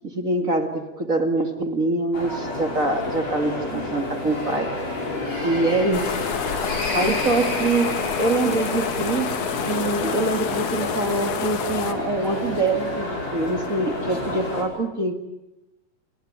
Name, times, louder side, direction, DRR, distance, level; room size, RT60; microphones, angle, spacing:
voice 1, 0.1-4.7 5.4-6.2 6.9-7.9 8.2-9.3 9.7-15.1, right 2 dB, 30° right, 5 dB, 2.0 m, -24 dB
sound 1, 2.1-14.6, left 2 dB, 45° left, 6.8 m, -29 dB
sound 2, 5.9-11.9, left 9 dB, 65° left, 2.7 m, -29 dB
29.0 x 21.0 x 8.9 m, 0.95 s
omnidirectional pair, 4.0 m